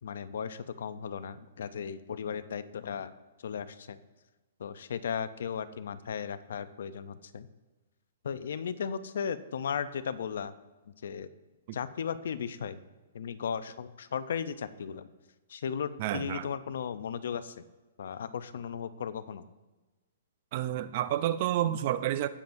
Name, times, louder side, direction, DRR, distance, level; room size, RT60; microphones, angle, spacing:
voice 1, 0.0-3.1 3.4-4.0 4.6-7.5 8.2-10.5 11.0-11.3 11.7-12.8 13.1-15.1 15.5-17.6 18.0-19.4, left 7 dB, 70° left, 14 dB, 0.5 m, -36 dB
voice 2, 16.0-16.5 20.5-22.3, right 12 dB, 45° right, 14 dB, 0.5 m, -30 dB
17.0 x 7.1 x 2.6 m, 1.2 s
hypercardioid pair, 155°, 0 cm